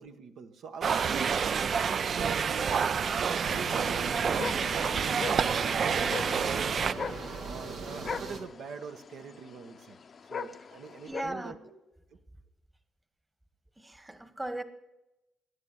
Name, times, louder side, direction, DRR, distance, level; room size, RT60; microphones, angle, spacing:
voice 1, 0.0-6.9 7.4-10.0 10.3-11.6, right 5 dB, 70° right, 6 dB, 1.3 m, -44 dB
sound 1, 0.8-6.9, right 6 dB, 50° right, 0.5 m, -28 dB
sound 2, 3.3-11.2, left 5 dB, 45° left, 0.7 m, -41 dB
sound 3, 3.4-8.4, right 3 dB, 90° right, 2.6 m, -38 dB
voice 2, 11.1-11.6 13.8-14.6, right 1 dB, 15° right, 10 dB, 1.3 m, -37 dB
18.0 x 11.0 x 5.8 m, 0.95 s
cardioid pair, 90°, 0 cm